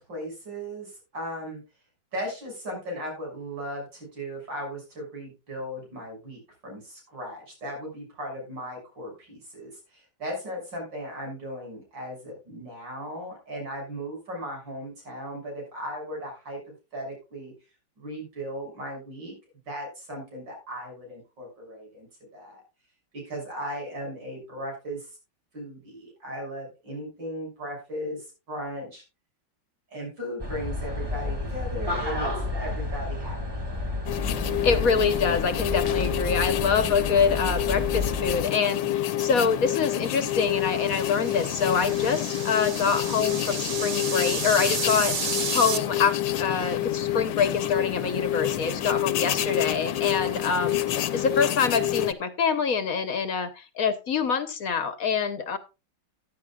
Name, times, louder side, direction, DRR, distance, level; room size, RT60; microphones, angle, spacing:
voice 1, 0.0-1.6 2.1-17.5 18.0-19.3 19.7-22.1 22.3-22.6 23.1-25.1 25.5-29.0 29.9-33.6, equal, 80° right, 1 dB, 7.0 m, -37 dB
sound 1, 30.4-38.4, left 2 dB, 15° right, 2.0 m, -31 dB
sound 2, 34.1-52.1, left 12 dB, 85° left, 1.5 m, -28 dB
voice 2, 34.6-45.1 45.5-55.6, left 6 dB, 55° left, 11 dB, 1.3 m, -25 dB
sound 3, 40.6-45.8, right 5 dB, 35° right, 0.8 m, -32 dB
15.0 x 10.0 x 2.3 m, 0.28 s
omnidirectional pair, 1.9 m